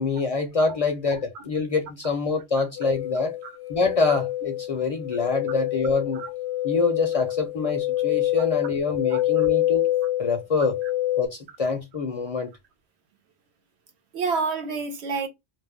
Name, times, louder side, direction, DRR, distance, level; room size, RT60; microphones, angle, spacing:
voice 1, 0.0-3.4 3.7-6.2 6.6-9.9 10.2-10.8 11.2-12.5, left 4 dB, 45° left, 0.5 m, -25 dB
sound 1, 2.8-11.3, left 14 dB, 75° left, 0.8 m, -26 dB
voice 2, 9.1-9.5 14.1-15.3, right 5 dB, 90° right, 1.0 m, -29 dB
2.5 x 2.0 x 3.4 m
omnidirectional pair, 1.1 m